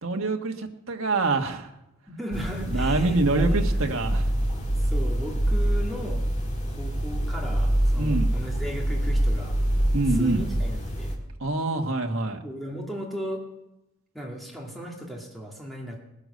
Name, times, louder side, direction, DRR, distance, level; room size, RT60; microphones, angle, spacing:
voice 1, 0.0-1.7 2.7-4.3 8.0-8.3 9.9-10.4 11.4-12.4, right 2 dB, 70° right, 3 dB, 1.6 m, -25 dB
voice 2, 2.1-3.8 4.5-6.2 6.7-9.6 10.1-11.1 12.4-13.4 14.1-16.0, right 1 dB, ahead, -2 dB, 2.2 m, -36 dB
sound 1, 2.3-11.2, right 1 dB, 30° left, 2.2 m, -25 dB
20.0 x 10.5 x 6.7 m, 0.93 s
head